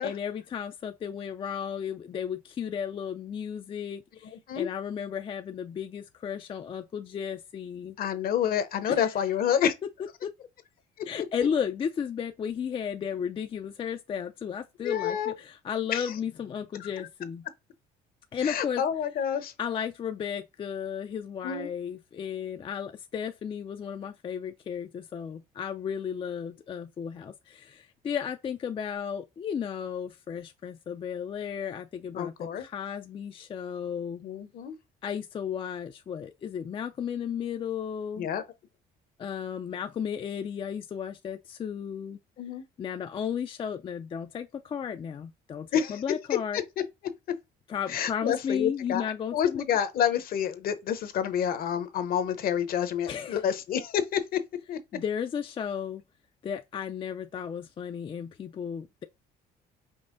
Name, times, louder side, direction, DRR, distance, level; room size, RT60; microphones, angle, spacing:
voice 1, 0.0-8.0 8.9-9.1 10.2-10.3 11.1-17.5 18.3-18.8 19.6-34.2 35.0-38.3 39.2-42.2 42.8-46.6 47.7-49.6 53.1-53.4 54.9-56.0 56.4-59.0, left 7 dB, 30° left, 0.4 m, -34 dB
voice 2, 4.3-4.7 8.0-9.7 14.8-15.3 15.9-16.1 16.8-16.9 18.4-19.5 21.4-21.7 32.1-32.6 34.2-34.7 38.2-38.4 42.4-42.6 45.7-46.0 46.5-46.6 47.9-54.4 54.7-54.8, left 9 dB, 60° left, 0.8 m, -28 dB
5.4 x 2.1 x 3.8 m
cardioid pair, 110°, 17 cm